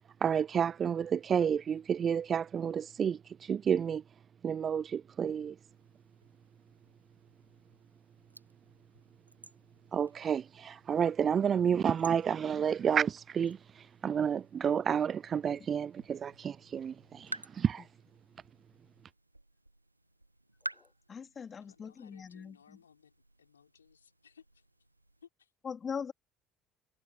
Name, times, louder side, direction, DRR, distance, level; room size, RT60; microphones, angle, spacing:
voice 1, 0.2-4.0 4.4-5.6 9.9-13.6 14.0-17.8, right 7 dB, 35° right, 0.4 m, -30 dB
sound 1, 5.7-25.3, right 1 dB, 90° right, 1.4 m, -52 dB
voice 2, 20.7-22.8 25.6-26.1, left 6 dB, 30° left, 3.0 m, -41 dB
voice 3, 21.6-24.7 25.2-25.5, left 7 dB, 80° left, 5.2 m, -61 dB
figure-of-eight pair, 60°, 0 cm